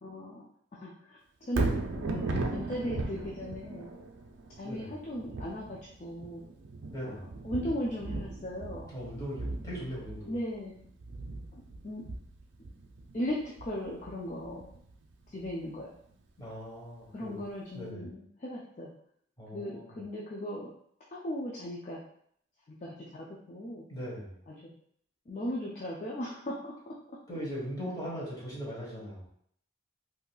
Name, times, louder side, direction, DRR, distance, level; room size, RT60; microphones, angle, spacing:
voice 1, 0.0-0.4 0.8-1.2 1.5-3.9 4.6-6.4 7.0-8.9 10.3-10.7 11.5-12.0 13.1-14.7 15.3-15.9 17.1-18.9 19.5-20.7 21.1-22.0 22.7-23.8 24.5-24.7 25.3-26.9, equal, 35° left, -4 dB, 0.4 m, -37 dB
Thunder, 1.4-15.6 16.1-16.2, right 2 dB, 70° right, 0.4 m, -37 dB
voice 2, 4.6-5.0 6.9-7.3 8.9-10.3 16.4-17.4 17.7-18.1 19.4-20.0 23.9-24.4 27.3-29.3, equal, 20° left, -7 dB, 1.2 m, -39 dB
3.7 x 2.8 x 2.3 m, 0.67 s
head